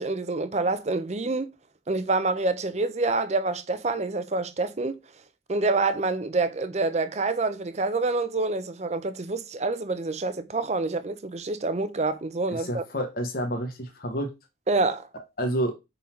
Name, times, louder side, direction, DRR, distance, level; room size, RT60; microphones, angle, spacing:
voice 1, 0.0-1.5 1.9-5.0 5.5-12.8 14.7-15.1, right 3 dB, 40° right, 0.6 m, -27 dB
voice 2, 12.5-14.3 15.4-15.7, equal, 55° left, 1.1 m, -29 dB
5.5 x 4.0 x 4.4 m
head